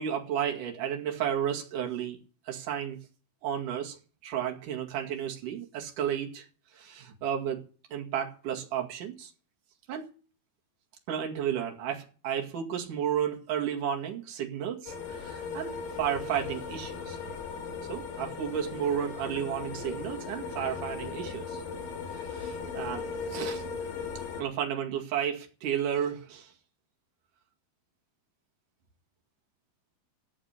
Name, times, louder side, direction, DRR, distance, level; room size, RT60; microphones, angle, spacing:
voice 1, 0.0-2.2 2.5-3.0 3.4-6.5 6.7-7.6 7.9-9.3 9.9-10.1 11.1-17.2 17.9-21.6 22.3-23.6 24.4-26.5, right 9 dB, 60° right, 3.5 m, -32 dB
sound 1, 14.9-24.4, left 5 dB, 65° left, 3.2 m, -37 dB
15.0 x 7.4 x 8.5 m
omnidirectional pair, 4.3 m